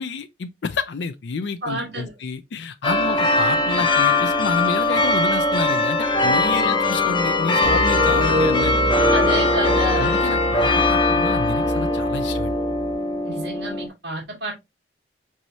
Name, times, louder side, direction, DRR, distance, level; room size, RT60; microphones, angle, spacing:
voice 1, 0.0-8.9 10.0-12.5, left 4 dB, 65° left, 0.4 m, -29 dB
voice 2, 1.6-2.1 6.5-6.7 9.1-10.2 13.2-14.5, right 1 dB, 60° right, 2.3 m, -29 dB
sound 1, 2.8-13.9, left 2 dB, 25° left, 0.7 m, -21 dB
sound 2, 7.6-12.9, equal, 35° right, 1.3 m, -26 dB
4.7 x 4.1 x 2.6 m
head